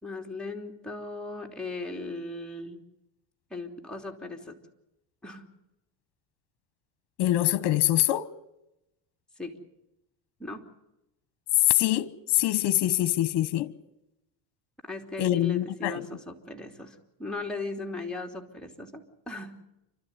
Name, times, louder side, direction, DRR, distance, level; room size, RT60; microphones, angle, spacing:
voice 1, 0.0-2.8 3.5-4.6 5.2-5.4 9.4-9.6 10.4-10.6 14.8-19.6, left 3 dB, ahead, 3.1 m, -38 dB
voice 2, 7.2-8.3 11.7-13.7 15.2-16.1, left 14 dB, 60° left, 1.1 m, -24 dB
29.5 x 13.0 x 9.7 m
cardioid pair, 120°, 47 cm